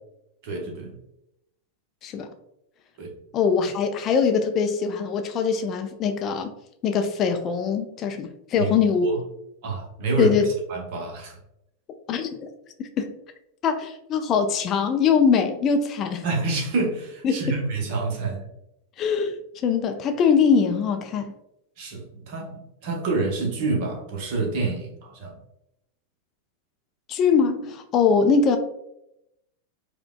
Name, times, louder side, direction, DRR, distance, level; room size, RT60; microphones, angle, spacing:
voice 1, 0.4-1.0 3.0-3.1 8.6-8.7 9.0-9.2 9.6-10.4 10.7-11.4 16.2-18.5 21.8-25.3, right 3 dB, 45° right, 1 dB, 0.9 m, -27 dB
voice 2, 3.3-6.5 6.8-9.1 10.2-10.5 12.1-12.5 12.8-13.1 13.6-16.3 17.2-17.4 19.0-19.4 19.6-21.3 27.1-28.6, left 6 dB, 30° left, 6 dB, 0.3 m, -22 dB
4.7 x 2.2 x 2.2 m, 0.83 s
figure-of-eight pair, 90°, 0 cm